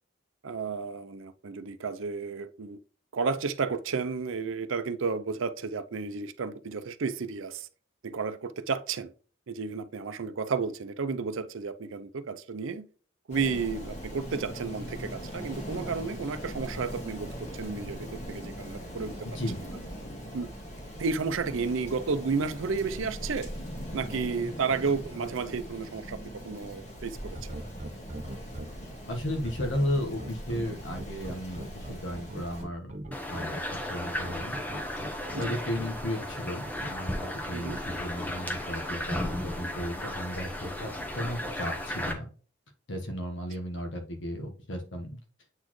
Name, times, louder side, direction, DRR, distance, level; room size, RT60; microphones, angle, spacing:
voice 1, 0.4-2.8 3.1-7.7 8.0-9.1 9.5-12.9 13.3-19.3 19.6-19.7 20.3-20.5 21.0-23.5 23.9-27.4 35.3-35.5 37.5-37.8, right 5 dB, 80° right, 0.5 m, -32 dB
Rain, 13.3-32.6, equal, 35° left, 1.8 m, -41 dB
voice 2, 19.2-19.6 28.8-33.0 33.3-34.6 35.3-42.3 42.9-45.2, left 1 dB, 70° left, 1.3 m, -34 dB
sound 1, 27.3-28.7 29.4-33.5 34.2-35.9 36.6-36.9, right 1 dB, 35° right, 0.7 m, -40 dB
sound 2, 33.1-42.1, left 1 dB, 10° left, 0.8 m, -35 dB
8.1 x 4.2 x 3.1 m
head